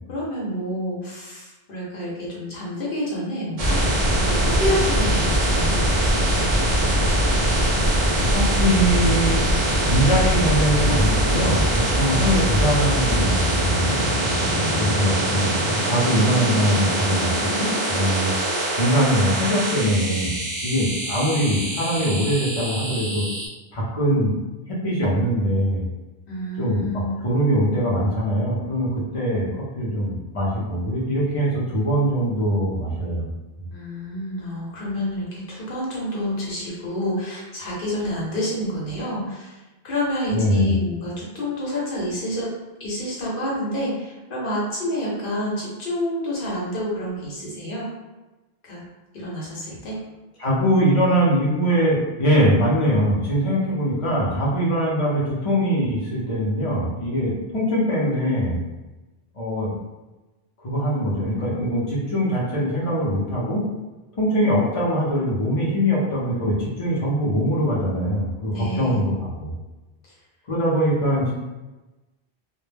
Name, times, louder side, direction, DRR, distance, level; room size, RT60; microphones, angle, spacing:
voice 1, 0.1-3.8 4.1-5.8 14.4-14.9 26.3-27.1 33.7-42.5 42.8-47.9 48.6-48.8 49.1-50.0 68.5-69.0, left 1 dB, 55° left, -5 dB, 0.9 m, -28 dB
sound 1, 3.6-23.5, right 1 dB, 45° right, 0.5 m, -22 dB
voice 2, 8.3-9.4 9.8-14.0 14.8-15.6 15.8-18.3 18.7-20.3 20.6-23.3 23.7-24.3 24.7-25.8 26.6-33.3 40.3-40.8 50.4-58.6 59.3-59.7 60.6-63.7 64.2-69.5 70.5-71.3, equal, 40° left, -6 dB, 0.6 m, -22 dB
2.2 x 2.1 x 3.2 m, 1.1 s
omnidirectional pair, 1.1 m